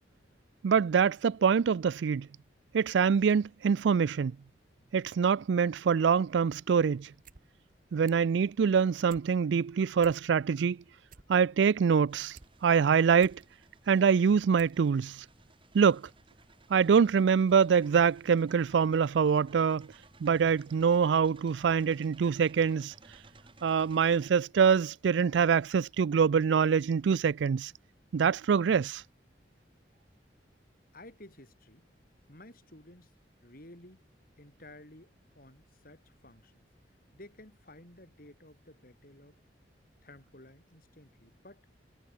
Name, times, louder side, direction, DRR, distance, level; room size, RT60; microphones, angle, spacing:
voice 1, 0.6-2.3 2.7-4.3 4.9-7.1 7.9-10.8 11.3-12.4 12.6-13.4 13.9-15.2 15.7-16.0 16.7-19.9 20.2-22.9 23.6-27.7 28.1-29.0, right 6 dB, 80° right, 0.4 m, -25 dB
sound 1, 7.2-7.4 7.7-8.3 8.7-9.3 9.7-9.8 10.0-10.6 10.9-12.5 12.9-13.4 14.0-14.1 14.5-14.8 15.1-15.2, right 5 dB, 50° right, 1.3 m, -54 dB
sound 2, 12.1-24.3, right 3 dB, 30° right, 3.7 m, -59 dB
voice 2, 30.9-31.9 32.3-33.1 33.4-34.0 34.4-36.5 37.1-39.4 40.0-41.7, left 1 dB, 50° left, 6.3 m, -53 dB
head